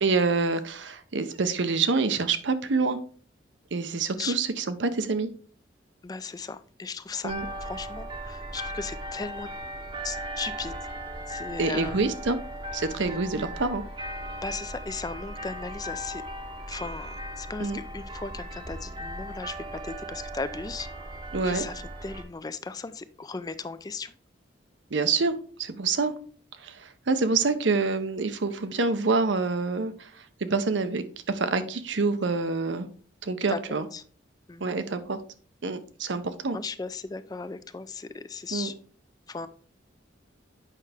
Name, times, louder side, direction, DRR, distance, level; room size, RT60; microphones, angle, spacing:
voice 1, 0.0-3.0 3.7-5.3 7.2-7.5 11.6-12.4 12.7-13.8 17.6-17.8 21.3-21.6 24.9-26.1 26.6-30.1 30.4-32.9 33.2-33.9 34.6-35.2 35.6-36.6 38.5-38.7, right 4 dB, 75° right, 10 dB, 0.7 m, -26 dB
voice 2, 6.0-7.3 7.6-9.5 10.0-10.7 11.3-12.0 13.0-13.2 14.4-16.2 16.7-20.9 21.4-24.1 33.5-33.6 33.9-34.0 34.5-34.6 36.5-38.7 39.3-39.5, left 4 dB, 20° left, 13 dB, 0.3 m, -36 dB
sound 1, 7.3-22.2, right 1 dB, 25° right, 0.8 m, -37 dB
8.3 x 5.5 x 3.4 m, 0.43 s
head